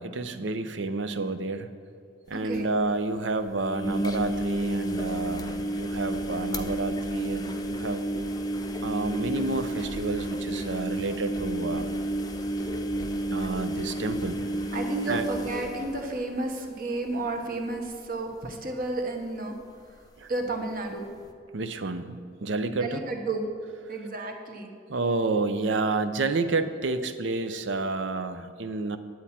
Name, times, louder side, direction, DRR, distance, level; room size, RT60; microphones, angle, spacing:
voice 1, 0.0-1.7 2.3-8.0 8.8-11.9 13.3-14.4 15.1-15.2 20.2-20.3 21.5-23.0 24.9-29.0, right 3 dB, 75° right, 10 dB, 0.6 m, -30 dB
sound 1, 2.3-2.4 2.5-2.6 3.6-16.7 17.0-17.4 17.7-17.8 19.7-19.8, right 1 dB, 20° left, 0.6 m, -31 dB
voice 2, 2.3-2.7 14.7-19.6 19.9-20.0 20.3-21.1 22.8-23.5 23.9-24.7, right 2 dB, 50° right, 3 dB, 1.2 m, -32 dB
10.5 x 8.6 x 4.3 m, 2.4 s
head